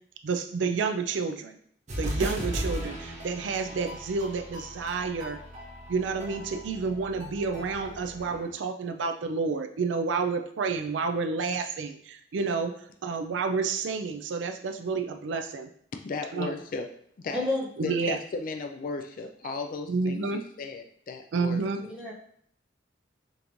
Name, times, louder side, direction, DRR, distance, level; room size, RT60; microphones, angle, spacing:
voice 1, 0.2-1.6 2.0-5.4 5.9-12.7 13.0-15.7 16.3-16.5 17.8-18.2 19.9-20.4 21.3-21.8, right 4 dB, 75° right, 6 dB, 0.4 m, -30 dB
sound 1, 1.9-8.5, equal, 40° right, 0.9 m, -37 dB
voice 2, 16.0-16.9 17.2-17.5 17.8-21.6, left 4 dB, 50° left, 6 dB, 0.4 m, -35 dB
voice 3, 17.3-17.6 21.9-22.1, left 2 dB, 5° right, -7 dB, 1.3 m, -29 dB
5.2 x 3.0 x 2.5 m, 0.64 s
head